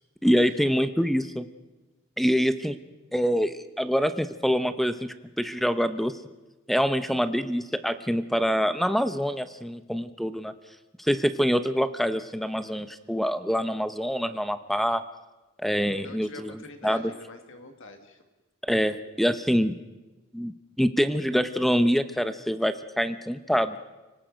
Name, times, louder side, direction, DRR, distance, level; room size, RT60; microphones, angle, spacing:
voice 1, 0.2-1.4 2.2-2.8 3.1-5.0 5.4-6.1 6.7-10.5 11.0-15.0 15.6-17.1 18.7-19.7 20.3-23.8, equal, ahead, 10 dB, 0.8 m, -25 dB
voice 2, 15.9-18.2, left 2 dB, 65° left, 6 dB, 1.8 m, -45 dB
29.5 x 18.5 x 5.1 m, 1.1 s
head